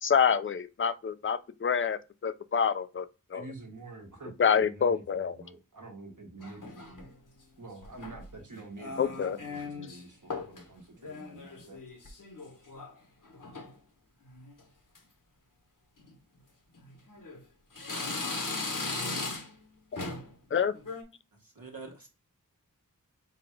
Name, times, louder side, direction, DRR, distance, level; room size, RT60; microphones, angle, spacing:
voice 1, 0.0-3.1 3.3-3.4 4.4-5.4 9.0-9.4 20.5-20.7, left 7 dB, 40° left, 0.4 m, -27 dB
voice 2, 3.3-7.0 7.6-11.8, right 2 dB, 60° right, 1.3 m, -47 dB
sound 1, 6.4-7.1 7.8-8.3 8.8-10.0 10.3-10.6 11.0-12.9 13.2-13.7 14.3-14.6 14.9-15.0 16.0-16.1 16.8-17.4 17.7-19.6 20.0-20.3 20.7-21.0, left 3 dB, 65° left, 1.1 m, -38 dB
voice 3, 21.3-22.1, right 4 dB, 85° right, 1.3 m, -46 dB
3.9 x 2.4 x 4.4 m
wide cardioid pair, 50°, 34 cm